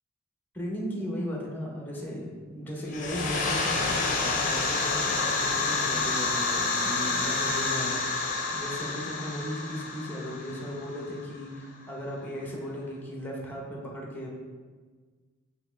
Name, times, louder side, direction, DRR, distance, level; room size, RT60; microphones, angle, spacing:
voice 1, 0.5-14.4, equal, 10° left, -2 dB, 0.8 m, -36 dB
sound 1, 2.9-11.4, left 3 dB, 40° left, 0.6 m, -29 dB
5.4 x 3.0 x 3.2 m, 1.5 s
head